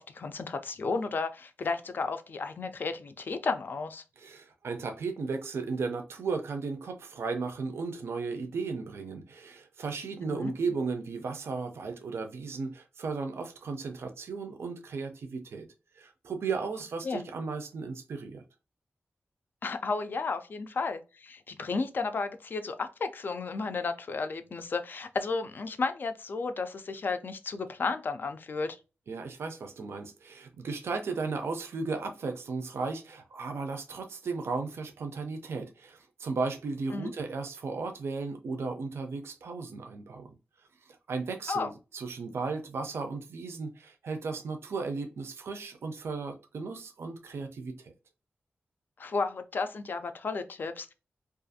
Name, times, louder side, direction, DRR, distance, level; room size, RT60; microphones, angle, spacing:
voice 1, 0.0-4.0 10.2-10.5 17.0-17.2 19.6-28.8 36.9-37.1 41.5-41.7 49.0-50.9, left 4 dB, 50° left, 0.3 m, -33 dB
voice 2, 4.2-15.7 16.0-18.4 29.1-40.3 40.9-47.9, right 4 dB, 75° right, 0.4 m, -35 dB
2.4 x 2.3 x 2.6 m
wide cardioid pair, 155°, 4 cm